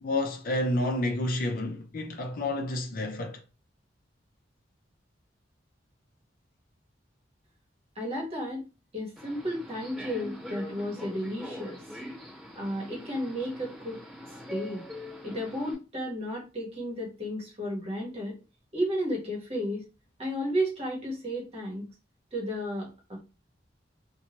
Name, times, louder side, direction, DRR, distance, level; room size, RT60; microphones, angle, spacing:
voice 1, 0.0-3.4, left 1 dB, 50° left, 0.5 m, -29 dB
voice 2, 8.0-8.7 8.9-11.8 12.5-14.0 14.5-14.8 15.2-18.3 18.7-19.8 20.2-21.9 22.3-23.2, equal, 35° right, 1.2 m, -33 dB
Subway metro underground, 9.2-15.7, equal, ahead, 1.1 m, -43 dB
2.7 x 2.2 x 2.9 m
head